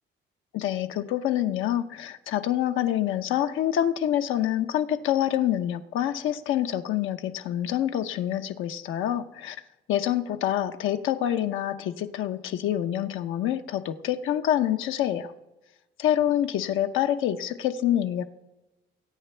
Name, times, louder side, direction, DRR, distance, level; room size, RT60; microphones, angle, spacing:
voice 1, 0.5-9.6 9.9-15.3 16.0-18.2, left 11 dB, 85° left, 7 dB, 0.8 m, -26 dB
21.5 x 9.0 x 3.3 m, 1.0 s
cardioid pair, 90°, 20 cm